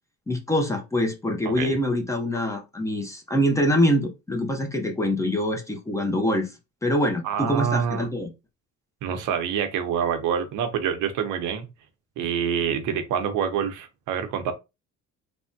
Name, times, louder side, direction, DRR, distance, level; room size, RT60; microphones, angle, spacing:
voice 1, 0.3-6.5 6.8-8.3, equal, 10° left, 0.5 m, -24 dB
voice 2, 1.4-1.8 7.2-8.1 9.0-11.7 12.2-14.5, right 8 dB, 80° right, 0.7 m, -26 dB
3.3 x 2.1 x 2.6 m
cardioid pair, 135°, 31 cm